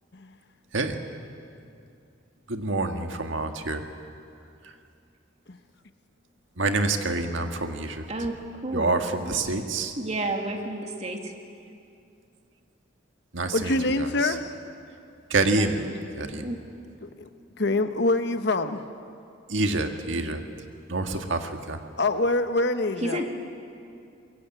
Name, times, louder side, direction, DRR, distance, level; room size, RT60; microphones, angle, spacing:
voice 1, 2.5-3.8 6.6-8.0 8.7-9.9 13.3-14.3 15.3-15.9 16.2-16.5 19.5-20.4 20.9-21.8, right 2 dB, 75° right, 5 dB, 1.8 m, -27 dB
voice 2, 9.9-11.2 15.5-16.0 16.4-16.6 23.0-23.2, right 1 dB, 35° right, 3 dB, 2.5 m, -30 dB
voice 3, 13.5-14.5 17.0-17.3 17.6-18.8 22.0-23.2, left 2 dB, 60° left, 9 dB, 1.2 m, -25 dB
23.5 x 22.0 x 9.0 m, 2.5 s
head